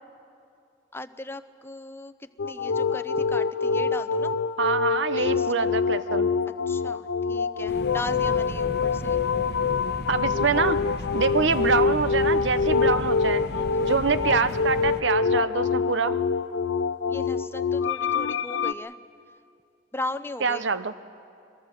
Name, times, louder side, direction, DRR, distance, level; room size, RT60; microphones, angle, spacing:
voice 1, 0.9-4.4 5.1-5.5 6.5-9.2 13.7-14.0 17.1-19.0 19.9-20.7, left 2 dB, 15° left, 12 dB, 0.6 m, -37 dB
sound 1, 2.4-18.7, left 5 dB, 85° left, 0.5 m, -25 dB
voice 2, 4.6-6.3 10.1-10.8 11.1-13.4 13.8-16.2 20.4-20.9, right 5 dB, 80° right, 13 dB, 0.8 m, -25 dB
sound 2, 7.7-15.0, left 2 dB, 60° left, 0.8 m, -35 dB
24.0 x 22.0 x 6.5 m, 2.5 s
head